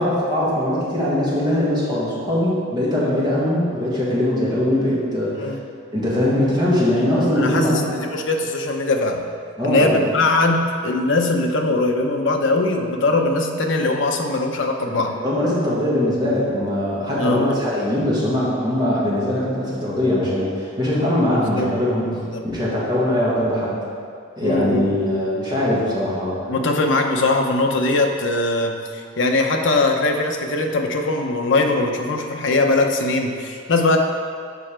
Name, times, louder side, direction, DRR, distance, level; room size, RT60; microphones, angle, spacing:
voice 1, 0.0-5.6 5.9-7.9 9.6-9.9 14.8-14.9 15.2-22.1 22.4-23.8 24.3-26.4, left 1 dB, 20° right, -7 dB, 1.5 m, -21 dB
voice 2, 7.3-9.2 9.6-15.1 17.2-17.5 21.5-21.7 22.1-22.4 24.4-25.0 26.5-34.0, left 2 dB, 65° left, 3 dB, 0.7 m, -21 dB
7.0 x 5.6 x 4.4 m, 2.3 s
head